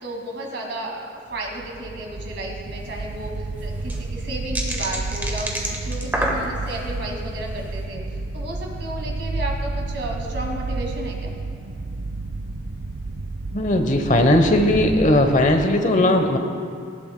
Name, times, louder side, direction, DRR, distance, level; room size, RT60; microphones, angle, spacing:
voice 1, 0.0-11.3, right 1 dB, 65° right, 0 dB, 2.0 m, -33 dB
sound 1, 1.4-15.7, right 3 dB, 85° right, 0.6 m, -31 dB
sound 2, 2.8-2.9 3.0-3.1 3.6-6.8 7.4-7.7, right 1 dB, 10° right, 1.2 m, -28 dB
voice 2, 13.5-16.4, left 1 dB, 40° left, 5 dB, 0.9 m, -18 dB
18.5 x 15.0 x 2.2 m, 2.4 s
head